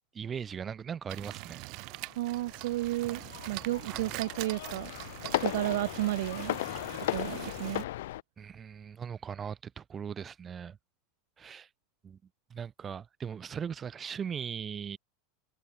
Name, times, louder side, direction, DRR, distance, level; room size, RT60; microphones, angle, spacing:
voice 1, 0.1-1.6 3.9-4.0 8.4-10.8 11.4-11.7 12.0-12.2 12.5-15.0, right 7 dB, 20° right, 2.2 m, -39 dB
sound 1, 1.1-7.8, right 27 dB, 45° right, 2.1 m, -43 dB
sound 2, 1.9-8.2, left 16 dB, 75° left, 2.9 m, -37 dB
voice 2, 2.2-4.9 5.4-6.6 7.1-7.8, right 17 dB, 70° right, 0.4 m, -32 dB
supercardioid pair, 160°, 0 cm